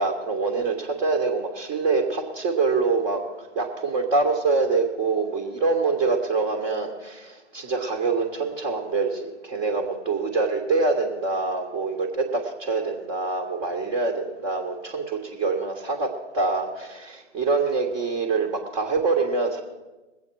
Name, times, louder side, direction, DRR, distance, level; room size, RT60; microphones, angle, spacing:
voice 1, 0.0-19.6, right 3 dB, 15° right, 3 dB, 1.1 m, -25 dB
21.0 x 8.1 x 4.6 m, 1.1 s
hypercardioid pair, 145°, 37 cm